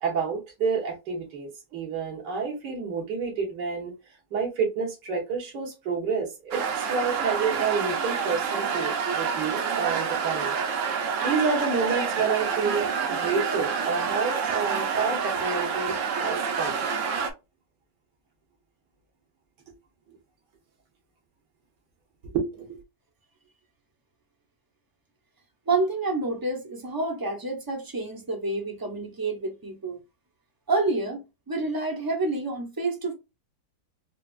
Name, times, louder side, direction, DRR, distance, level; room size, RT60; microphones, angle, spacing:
voice 1, 0.0-3.9 4.3-10.6 11.2-15.9 16.2-16.9 20.1-20.2 22.3-22.8, right 5 dB, 85° right, 1.9 m, -29 dB
sound 1, 6.5-17.3, right 6 dB, 60° right, 0.9 m, -28 dB
voice 2, 25.7-30.0 30.7-33.1, right 3 dB, 25° right, 0.5 m, -28 dB
4.9 x 2.4 x 2.5 m
omnidirectional pair, 1.8 m